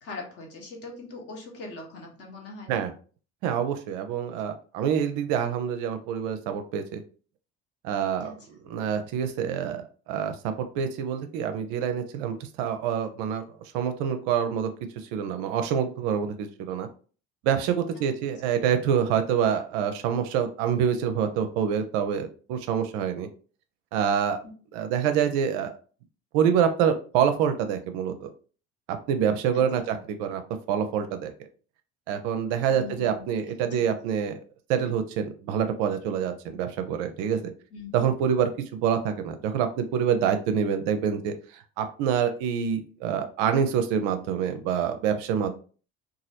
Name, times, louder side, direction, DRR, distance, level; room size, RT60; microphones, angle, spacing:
voice 1, 0.0-2.8 8.2-8.3 29.9-30.0 32.7-33.2 33.8-33.9 37.7-37.9, left 3 dB, 45° left, 0 dB, 1.1 m, -41 dB
voice 2, 3.4-7.0 7.8-8.4 8.6-13.4 13.7-16.9 17.4-23.3 23.9-24.4 24.7-25.7 26.3-28.3 28.9-30.4 30.7-31.3 32.1-34.4 34.7-37.5 37.9-45.6, right 8 dB, 55° right, 7 dB, 0.5 m, -26 dB
2.9 x 2.4 x 2.8 m, 0.39 s
figure-of-eight pair, 60°, 35 cm